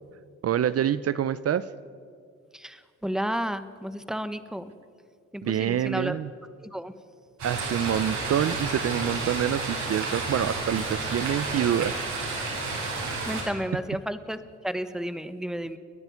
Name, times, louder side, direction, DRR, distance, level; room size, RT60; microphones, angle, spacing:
voice 1, 0.4-1.7 5.4-6.3 7.4-12.0 13.4-13.5, right 10 dB, 50° right, 15 dB, 0.7 m, -26 dB
voice 2, 2.5-4.6 5.3-6.1 6.6-6.9 13.3-14.4 14.6-15.8, equal, ahead, 12 dB, 1.3 m, -32 dB
sound 1, 7.4-13.4, right 3 dB, 70° right, 7.9 m, -31 dB
30.0 x 10.5 x 9.5 m, 2.1 s
cardioid pair, 90°, 30 cm